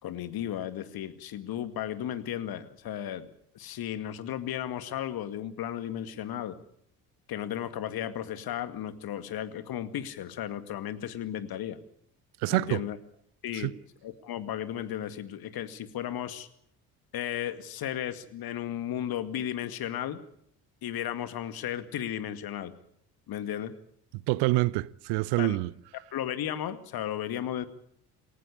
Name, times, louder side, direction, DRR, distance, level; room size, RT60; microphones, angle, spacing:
voice 1, 0.0-3.3 3.5-6.6 7.3-11.8 12.5-13.0 13.4-13.7 14.0-16.5 17.1-20.2 20.8-22.7 23.3-23.7 25.4-25.6 26.1-27.7, left 11 dB, 50° left, 2.2 m, -34 dB
voice 2, 12.4-12.9 13.5-13.7 24.1-25.7, right 21 dB, 60° right, 0.9 m, -27 dB
27.5 x 14.5 x 8.5 m
figure-of-eight pair, 50°, 46 cm